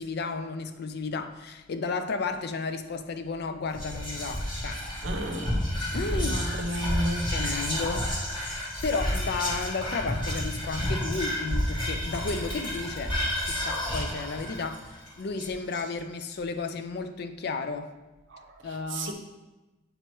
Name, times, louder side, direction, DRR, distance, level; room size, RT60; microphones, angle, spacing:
voice 1, 0.0-4.8 5.9-6.4 7.3-8.1 8.8-17.9 18.6-19.1, left 4 dB, 55° left, 9 dB, 0.4 m, -33 dB
Whispering, 3.7-16.2, equal, 25° left, 1.5 m, -30 dB
voice 2, 5.0-5.6 6.1-7.3 18.3-19.1, equal, 70° right, 3 dB, 0.8 m, -33 dB
8.0 x 2.9 x 4.6 m, 1.1 s
head